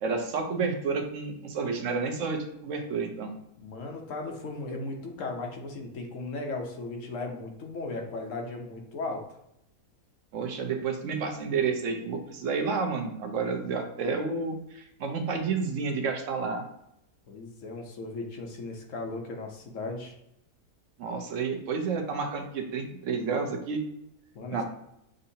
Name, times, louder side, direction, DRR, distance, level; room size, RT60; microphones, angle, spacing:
voice 1, 0.0-3.3 10.3-16.6 21.0-23.8 24.5-24.6, right 5 dB, 60° right, 4 dB, 1.0 m, -30 dB
voice 2, 3.6-9.2 17.3-20.1 24.3-24.6, left 3 dB, 65° left, 2 dB, 1.1 m, -36 dB
6.4 x 2.6 x 2.7 m, 0.79 s
omnidirectional pair, 1.6 m